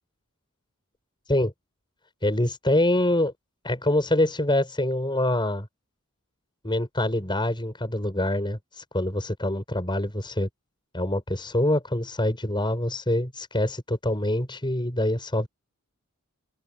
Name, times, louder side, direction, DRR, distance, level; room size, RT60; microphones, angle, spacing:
voice 1, 2.2-3.3 3.6-5.7 6.6-10.5 10.9-15.5, left 1 dB, 20° left, 7.0 m, -25 dB
open air
head